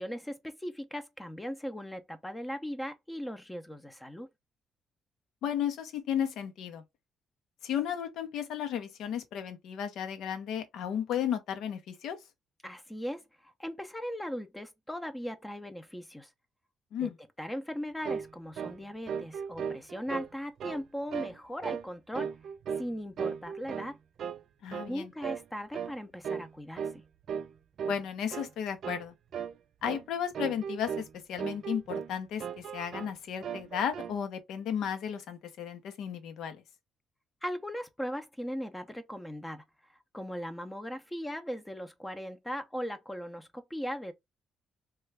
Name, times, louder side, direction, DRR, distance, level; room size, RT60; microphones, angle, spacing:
voice 1, 0.0-4.3 12.6-16.3 17.0-17.1 17.4-22.3 22.8-24.0 24.7-26.9 37.4-39.6 40.1-44.1, equal, 10° left, 0.6 m, -38 dB
voice 2, 5.4-6.8 7.6-12.2 16.9-17.1 24.6-25.1 27.9-29.1 29.8-36.6, left 9 dB, 80° left, 0.7 m, -34 dB
sound 1, 18.0-18.3 18.6-18.8 19.1-20.3 20.6-20.8 21.1-21.4 21.6-21.9 22.1-22.9 23.2-23.9 24.2-24.4 24.7-24.9 25.2-25.4 25.7-26.0 26.2-26.5 26.8-27.0 27.3-27.5 27.8-28.0 28.3-28.5 28.8-29.1 29.3-29.6 29.8-30.0 30.3-31.1 31.4-32.1 32.4-33.1 33.4-34.2, right 7 dB, 60° right, 0.3 m, -36 dB
3.1 x 2.3 x 3.2 m
cardioid pair, 110°, 0 cm